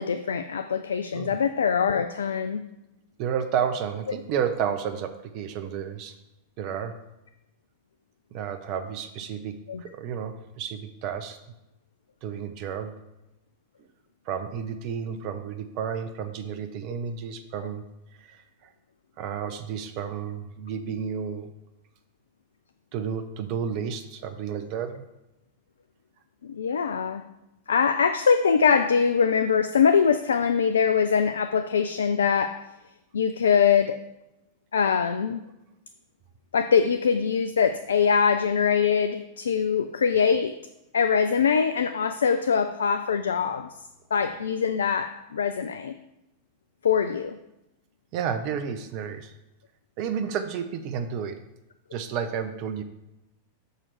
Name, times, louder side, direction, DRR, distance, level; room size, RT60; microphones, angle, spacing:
voice 1, 0.0-2.6 9.7-9.8 26.4-27.2 27.7-32.7 33.1-34.0 34.7-35.4 36.5-40.6 40.9-43.7 44.1-45.9 46.8-47.4, left 6 dB, 70° left, 10 dB, 0.3 m, -23 dB
voice 2, 3.2-6.2 6.6-6.9 8.3-11.4 12.2-12.9 14.3-17.8 18.2-18.4 19.2-21.5 22.9-25.0 48.1-49.3 50.0-51.4 51.9-52.8, right 7 dB, 45° right, 9 dB, 0.6 m, -31 dB
6.5 x 5.9 x 4.5 m, 0.92 s
figure-of-eight pair, 90°, 0 cm